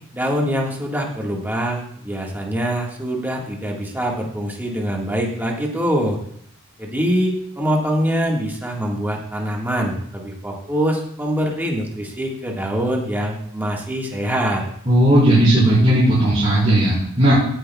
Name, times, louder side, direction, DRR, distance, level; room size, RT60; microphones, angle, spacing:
voice 1, 0.1-6.2 6.8-14.6, equal, 10° right, -1 dB, 1.6 m, -24 dB
voice 2, 14.9-17.3, right 1 dB, 30° right, -10 dB, 3.8 m, -15 dB
16.0 x 10.0 x 2.3 m, 0.67 s
head